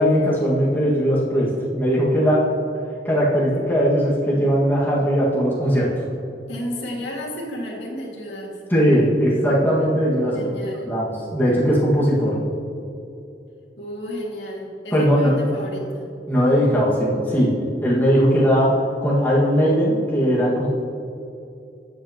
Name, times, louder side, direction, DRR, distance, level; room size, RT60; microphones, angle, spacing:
voice 1, 0.0-2.5 3.1-5.9 8.7-10.4 10.9-12.4 14.9-15.4 16.3-20.7, equal, 10° left, -7 dB, 1.7 m, -19 dB
voice 2, 6.5-8.6 10.3-10.9 13.8-16.1, equal, 85° left, -3 dB, 2.0 m, -32 dB
13.5 x 7.8 x 2.9 m, 2.7 s
head